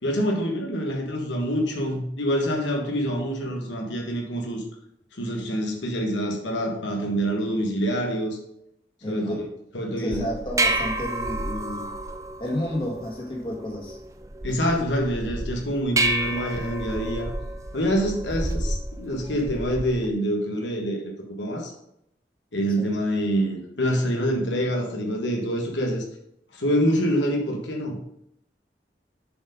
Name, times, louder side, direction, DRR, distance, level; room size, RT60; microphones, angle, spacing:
voice 1, 0.0-4.6 5.2-8.4 9.1-9.4 9.7-10.3 14.4-17.3 17.7-21.0 21.4-21.7 22.5-26.0 26.5-28.0, equal, 85° left, 1 dB, 1.6 m, -26 dB
voice 2, 9.0-9.4 10.0-12.0 12.4-14.0 22.8-22.9, left 1 dB, 25° left, -1 dB, 1.8 m, -31 dB
sound 1, 10.1-20.1, right 2 dB, 15° right, 0.4 m, -30 dB
7.5 x 4.7 x 5.1 m, 0.76 s
head